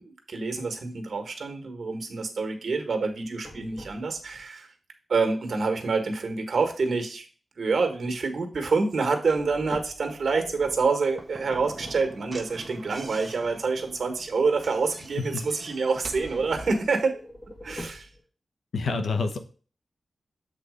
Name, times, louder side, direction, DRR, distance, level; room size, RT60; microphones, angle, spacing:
voice 1, 0.0-4.7 5.1-7.3 7.6-17.2 17.6-18.1, right 4 dB, 65° right, 5 dB, 1.5 m, -27 dB
sound 1, 3.1-4.4 8.9-12.5 17.0-18.2, left 1 dB, 30° left, 2.4 m, -45 dB
Slam / Knock, 11.1-16.9, right 3 dB, 35° right, 0.9 m, -44 dB
voice 2, 18.7-19.4, left 4 dB, 90° left, 7 dB, 0.8 m, -27 dB
7.6 x 4.1 x 4.9 m, 0.39 s
wide cardioid pair, 120°, 0 cm